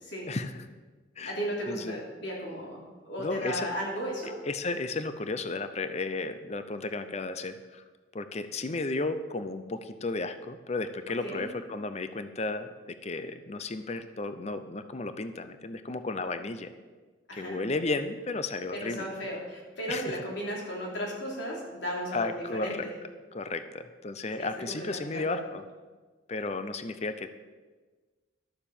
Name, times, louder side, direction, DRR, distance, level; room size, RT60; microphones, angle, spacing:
voice 1, 0.3-0.6 1.2-1.4 1.7-2.0 3.2-3.7 4.5-7.8 8.1-16.7 17.4-19.1 19.9-20.2 22.1-22.9 23.3-25.6 26.3-27.5, left 3 dB, 35° left, 10 dB, 0.6 m, -34 dB
voice 2, 1.2-4.4 11.2-11.5 17.3-17.6 18.7-22.9 24.4-25.4, equal, 65° left, -3 dB, 3.4 m, -35 dB
11.5 x 7.2 x 7.1 m, 1.4 s
head